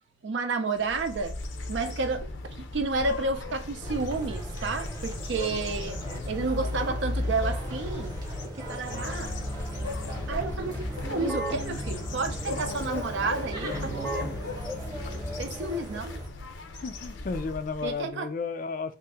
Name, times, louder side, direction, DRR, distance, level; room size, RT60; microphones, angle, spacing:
voice 1, 0.2-1.4 1.7-2.2 2.6-6.0 6.3-8.2 8.6-9.4 10.3-14.2 15.4-16.2 17.8-18.3, right 3 dB, 75° right, 0.5 m, -31 dB
sound 1, 0.7-18.0, left 2 dB, 85° left, 0.6 m, -37 dB
sound 2, 3.8-16.3, equal, 20° right, 0.8 m, -38 dB
voice 2, 6.0-6.8 16.8-19.0, left 4 dB, 45° left, 0.3 m, -34 dB
Keyboard (musical), 8.9-15.7, right 1 dB, 10° left, 0.6 m, -38 dB
2.8 x 2.5 x 3.5 m
head